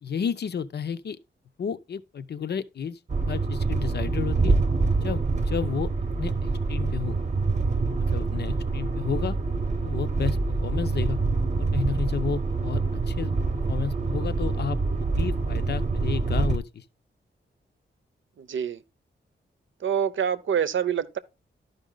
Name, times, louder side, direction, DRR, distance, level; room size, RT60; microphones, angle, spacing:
voice 1, 0.0-1.2 1.6-3.0 3.3-4.6 5.0-5.9 6.2-7.2 8.0-9.4 9.8-11.2 11.6-12.8 13.1-16.8, left 7 dB, 60° left, 0.6 m, -32 dB
sound 1, 3.1-16.6, right 3 dB, 35° right, 0.8 m, -26 dB
voice 2, 18.4-18.8 19.8-21.2, right 8 dB, 80° right, 0.7 m, -26 dB
12.0 x 5.2 x 3.8 m
wide cardioid pair, 165°, 20 cm